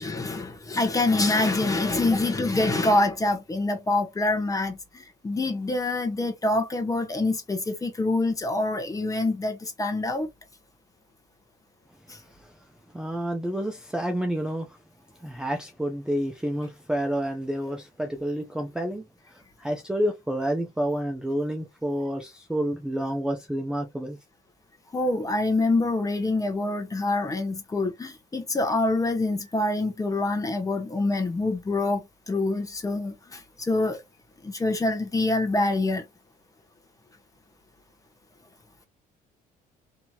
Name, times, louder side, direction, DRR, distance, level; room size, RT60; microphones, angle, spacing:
voice 1, 0.0-10.3 12.1-12.2 24.9-32.0 32.3-34.0 34.4-36.1, left 2 dB, 20° left, 1.0 m, -25 dB
voice 2, 12.9-14.8 15.2-24.2, equal, 5° right, 0.6 m, -29 dB
2.9 x 2.8 x 2.2 m
cardioid pair, 110°, 17 cm